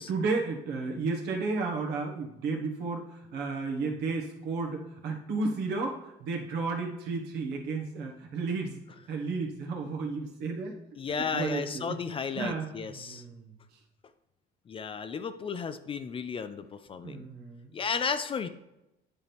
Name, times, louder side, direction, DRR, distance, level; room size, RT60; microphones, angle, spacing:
voice 1, 0.0-8.8 9.1-10.7 11.1-13.5 17.0-17.7, right 4 dB, 80° right, 1 dB, 1.4 m, -33 dB
voice 2, 11.0-13.2 14.7-17.3 17.7-18.5, left 6 dB, 30° left, 11 dB, 0.4 m, -34 dB
9.6 x 4.5 x 3.4 m, 0.93 s
cardioid pair, 110°, 17 cm